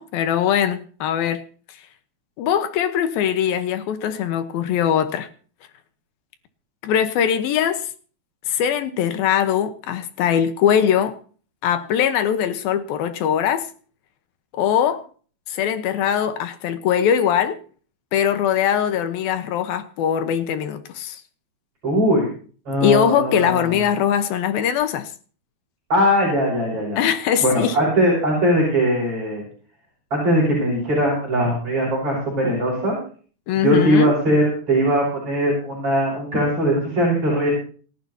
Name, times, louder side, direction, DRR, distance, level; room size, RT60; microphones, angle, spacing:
voice 1, 0.0-1.4 2.4-5.3 6.8-7.9 8.5-11.2 11.6-13.7 14.5-15.0 15.5-17.6 18.1-21.2 22.8-25.1 27.0-27.8 33.5-34.1, left 9 dB, 75° left, 2.8 m, -21 dB
voice 2, 21.8-22.3 22.7-23.7 25.9-27.0 27.4-29.4 30.1-33.0 33.6-37.5, equal, 35° right, 7.5 m, -20 dB
28.0 x 12.0 x 2.9 m
omnidirectional pair, 4.5 m